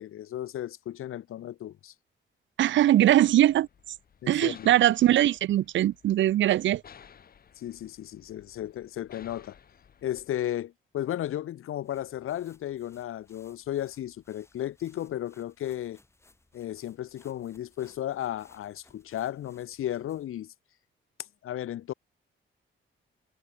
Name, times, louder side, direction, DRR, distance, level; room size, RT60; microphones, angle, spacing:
voice 1, 0.0-1.9 4.2-4.7 7.6-9.6 10.0-16.0 16.5-20.5 21.4-21.9, left 12 dB, 85° left, 1.3 m, -34 dB
voice 2, 2.6-3.7 4.3-6.8, right 13 dB, 65° right, 0.4 m, -21 dB
sound 1, 3.0-10.3, left 7 dB, 45° left, 4.4 m, -56 dB
sound 2, 11.8-20.4, left 2 dB, 10° left, 4.0 m, -63 dB
wide cardioid pair, 180°, 21 cm